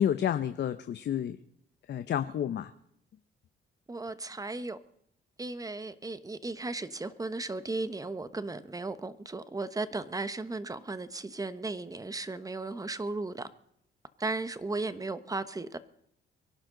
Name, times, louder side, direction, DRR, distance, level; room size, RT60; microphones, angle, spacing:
voice 1, 0.0-1.4 1.9-2.7, left 9 dB, 60° left, 0.9 m, -29 dB
voice 2, 3.9-4.8 5.4-13.5 14.2-15.8, right 3 dB, 15° right, 1.2 m, -35 dB
24.0 x 11.5 x 4.0 m
cardioid pair, 90°, 20 cm